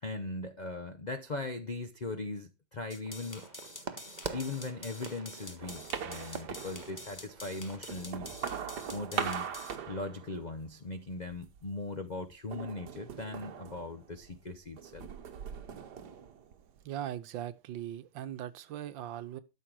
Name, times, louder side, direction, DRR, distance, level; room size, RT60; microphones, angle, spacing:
voice 1, 0.0-3.5 4.3-8.4 8.9-9.5 9.9-15.1, left 3 dB, 80° left, 0.4 m, -39 dB
sound 1, 2.9-9.7, left 2 dB, 15° left, 0.9 m, -48 dB
sound 2, 3.0-8.1, right 5 dB, 40° right, 0.7 m, -46 dB
sound 3, 5.6-7.2 7.7-10.7 11.1-11.7 12.5-14.4 14.8-16.8, right 7 dB, 65° right, 1.6 m, -40 dB
voice 2, 16.8-19.4, right 11 dB, 80° right, 1.6 m, -39 dB
12.5 x 6.6 x 4.7 m
omnidirectional pair, 2.0 m